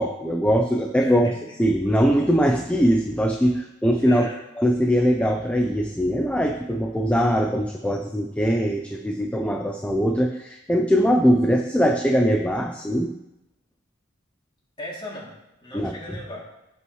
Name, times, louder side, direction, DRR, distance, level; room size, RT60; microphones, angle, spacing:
voice 1, 0.0-1.3 1.6-4.3 4.6-13.1 15.7-15.9, equal, 5° left, 2 dB, 0.5 m, -21 dB
voice 2, 1.0-1.6 4.0-4.4 14.8-15.3 15.6-16.5, left 1 dB, 25° left, -5 dB, 2.9 m, -37 dB
16.5 x 5.6 x 3.2 m, 0.91 s
head